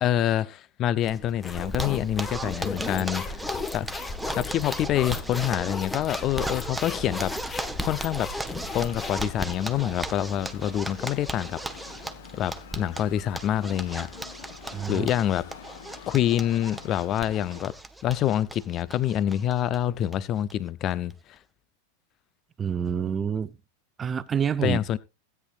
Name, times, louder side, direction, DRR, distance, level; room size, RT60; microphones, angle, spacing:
voice 1, 0.0-3.4 3.7-3.9 4.4-7.6 7.8-8.3 8.7-12.0 12.3-14.1 14.9-15.4 16.1-17.7 18.0-21.1 24.6-25.0, left 11 dB, 35° left, 0.8 m, -26 dB
sound 1, 1.0-9.8, left 3 dB, 15° left, 1.6 m, -36 dB
Zipper (clothing), 1.6-19.8 20.1-20.2 20.5-20.6 20.9-21.4, right 1 dB, 5° right, 1.2 m, -37 dB
sound 2, 8.7-17.6, left 8 dB, 55° left, 1.4 m, -46 dB
voice 2, 14.7-15.1 22.6-23.5 24.0-24.8, right 7 dB, 20° right, 0.8 m, -28 dB
16.5 x 9.8 x 2.6 m
figure-of-eight pair, 90°, 0 cm